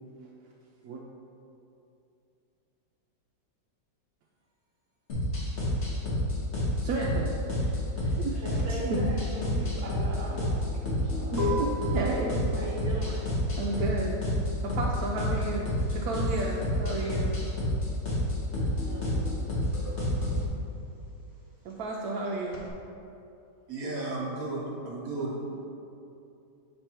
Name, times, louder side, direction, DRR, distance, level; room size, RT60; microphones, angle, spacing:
sound 1, 5.1-20.5, left 1 dB, 40° left, 1.4 m, -29 dB
voice 1, 6.8-7.3 8.1-8.4 8.9-9.0 11.3-12.5 13.6-14.2 14.6-17.3 21.6-22.6, right 3 dB, 75° right, -2 dB, 0.9 m, -32 dB
voice 2, 8.0-11.3 12.5-13.3 18.6-19.5, right 2 dB, 35° right, -4 dB, 1.2 m, -39 dB
sound 2, 8.2-18.2 18.5-22.7, left 1 dB, 15° right, 0.7 m, -39 dB
voice 3, 23.7-25.4, right 2 dB, 55° right, -3 dB, 1.3 m, -34 dB
7.4 x 3.3 x 4.4 m, 2.7 s
omnidirectional pair, 2.0 m